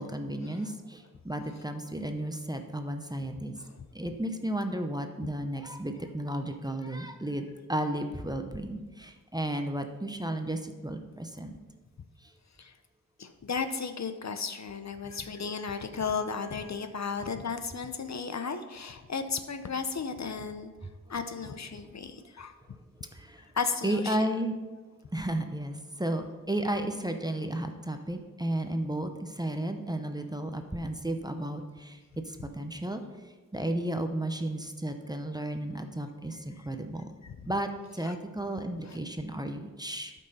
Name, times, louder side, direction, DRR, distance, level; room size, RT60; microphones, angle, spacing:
voice 1, 0.0-3.5 3.9-11.6 12.2-12.3 21.7-21.9 23.1-23.5 23.8-24.5 25.1-32.0 32.2-37.1 37.4-40.1, right 1 dB, 10° right, 6 dB, 0.7 m, -33 dB
voice 2, 13.2-20.7 21.1-22.5 23.5-24.3 37.2-37.5 38.0-38.1 38.9-39.0, left 5 dB, 55° left, 9 dB, 0.6 m, -34 dB
12.0 x 5.5 x 4.2 m, 1.3 s
wide cardioid pair, 95°, 34 cm